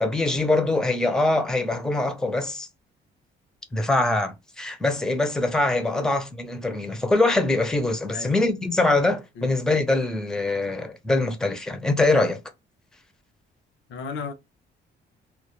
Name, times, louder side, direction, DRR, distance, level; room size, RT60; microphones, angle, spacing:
voice 1, 0.0-2.7 3.7-12.4, left 2 dB, 5° left, 0.5 m, -23 dB
voice 2, 13.9-14.3, left 5 dB, 70° left, 0.6 m, -34 dB
2.1 x 2.1 x 3.0 m
cardioid pair, 90°, 20 cm